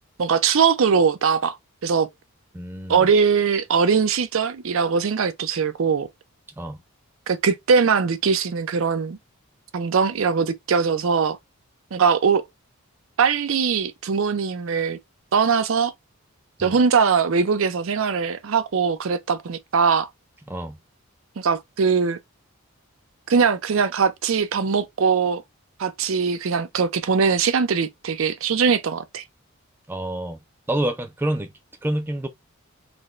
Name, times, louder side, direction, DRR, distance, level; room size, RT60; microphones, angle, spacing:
voice 1, 0.2-1.6 1.8-2.1 2.9-6.1 7.3-9.2 9.7-11.4 11.9-12.4 13.2-15.0 15.3-15.9 16.6-20.1 21.4-22.2 23.3-25.4 25.8-29.2, right 5 dB, 65° right, 0.5 m, -21 dB
voice 2, 2.5-3.1 6.6-6.8 16.6-16.8 20.5-20.8 29.9-30.4 30.7-31.5 31.8-32.3, right 1 dB, 10° right, 0.3 m, -27 dB
4.0 x 2.2 x 3.0 m
head